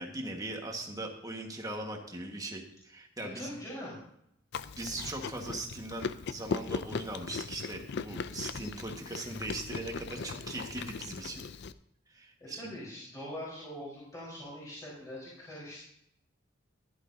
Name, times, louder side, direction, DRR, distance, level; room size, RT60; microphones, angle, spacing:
voice 1, 0.0-3.5 4.8-11.4 12.1-12.7, right 2 dB, 20° right, 2 dB, 1.5 m, -40 dB
voice 2, 3.3-4.0 12.4-15.9, equal, 20° left, -7 dB, 4.3 m, -43 dB
Chewing mastication, 4.5-11.7, left 5 dB, 60° left, 0.4 m, -39 dB
14.5 x 11.0 x 2.8 m, 0.75 s
head